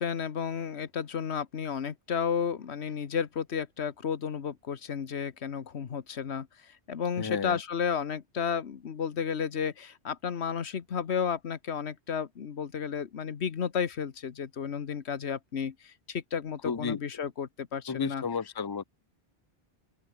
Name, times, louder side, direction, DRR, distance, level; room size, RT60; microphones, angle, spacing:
voice 1, 0.0-18.2, left 7 dB, 90° left, 1.4 m, -32 dB
voice 2, 7.2-7.6 16.6-17.0 17.9-18.8, left 5 dB, 25° left, 0.8 m, -32 dB
open air
omnidirectional pair, 1.1 m